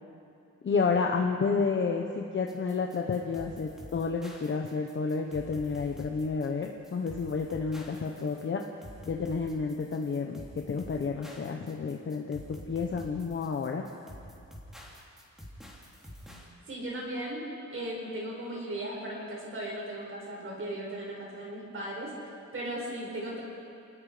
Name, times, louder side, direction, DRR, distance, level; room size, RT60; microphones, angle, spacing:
voice 1, 0.6-8.6 9.1-13.9, left 5 dB, 40° left, 2 dB, 1.1 m, -30 dB
sound 1, 2.5-16.5, equal, ahead, 3.3 m, -48 dB
voice 2, 16.7-22.1 22.5-23.4, right 1 dB, 45° right, -3 dB, 6.1 m, -37 dB
29.5 x 19.5 x 5.1 m, 2.6 s
wide cardioid pair, 180°, 30 cm